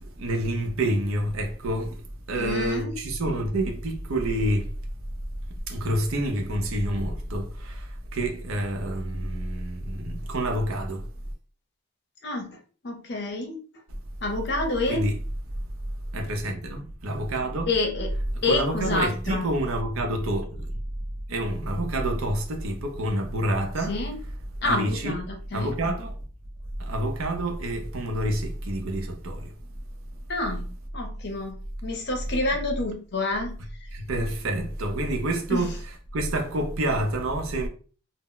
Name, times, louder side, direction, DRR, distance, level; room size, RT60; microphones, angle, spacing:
voice 1, 0.0-2.0 2.3-4.7 5.7-11.1 14.9-15.2 16.1-17.7 18.5-20.7 21.3-24.0 24.6-25.2 25.5-26.2 26.8-29.5 33.9-37.7, right 1 dB, 90° right, 0.6 m, -28 dB
voice 2, 2.3-2.9 12.2-12.6 12.8-13.6 14.2-15.0 17.7-18.1 18.4-19.5 23.9-24.2 24.6-25.7 30.3-30.7 30.9-31.5 31.8-33.6 35.5-35.7, left 2 dB, 55° left, 0.6 m, -28 dB
2.1 x 2.0 x 3.7 m
head